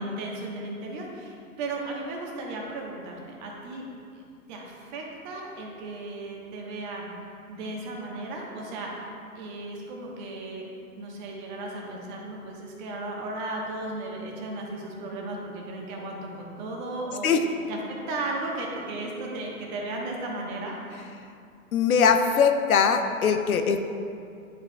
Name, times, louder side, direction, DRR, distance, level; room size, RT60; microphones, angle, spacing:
voice 1, 0.0-3.8 4.5-7.1 7.5-10.6 10.9-17.3 17.7-21.1, right 2 dB, 30° right, -1 dB, 1.1 m, -35 dB
voice 2, 21.7-23.8, left 6 dB, 75° left, 7 dB, 0.7 m, -21 dB
10.5 x 4.8 x 2.3 m, 2.4 s
hypercardioid pair, 125°, 44 cm